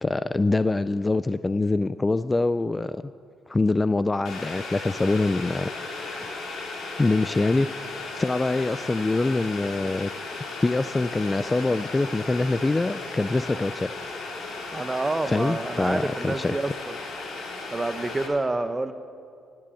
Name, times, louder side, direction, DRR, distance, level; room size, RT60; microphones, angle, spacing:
voice 1, 0.0-3.0 3.5-6.3 7.0-10.1 10.6-13.9 15.3-16.5, left 2 dB, 20° left, 14 dB, 0.3 m, -24 dB
Boiling, 4.2-18.3, left 3 dB, 75° left, 3.0 m, -36 dB
voice 2, 14.7-17.0 17.7-18.9, right 2 dB, 20° right, 11 dB, 0.8 m, -28 dB
18.0 x 7.6 x 8.4 m, 2.4 s
cardioid pair, 90°, 0 cm